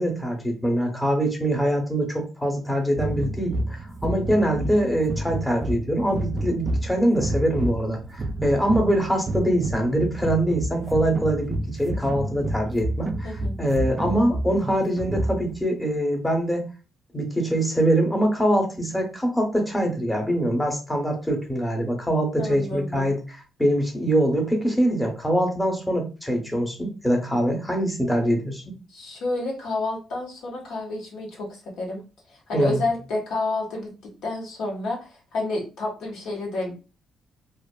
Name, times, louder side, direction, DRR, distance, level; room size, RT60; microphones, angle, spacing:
voice 1, 0.0-16.6 17.1-28.7 32.5-32.8, right 1 dB, 10° left, 1 dB, 0.8 m, -24 dB
sound 1, 2.9-15.6, right 1 dB, 35° right, 0.3 m, -30 dB
voice 2, 13.2-13.6 22.4-23.1 28.9-32.0 32.5-33.9 34.2-36.7, left 2 dB, 80° left, -1 dB, 1.0 m, -29 dB
2.4 x 2.4 x 2.2 m, 0.32 s
cardioid pair, 90°, 0 cm